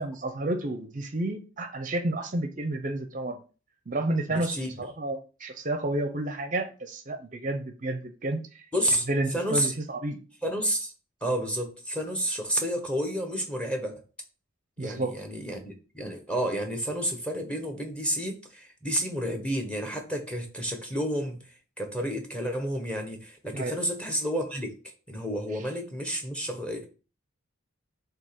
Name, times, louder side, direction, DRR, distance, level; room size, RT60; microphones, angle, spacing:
voice 1, 0.0-3.4 3.9-8.7 9.1-10.2 14.8-15.2 23.5-23.8, right 2 dB, 40° right, 0.7 m, -31 dB
voice 2, 4.3-4.7 8.7-9.1 9.3-9.7 10.4-10.9 11.2-13.9 14.8-21.4 21.8-24.7 25.1-26.9, equal, 5° left, 1.2 m, -30 dB
7.3 x 2.9 x 5.9 m
head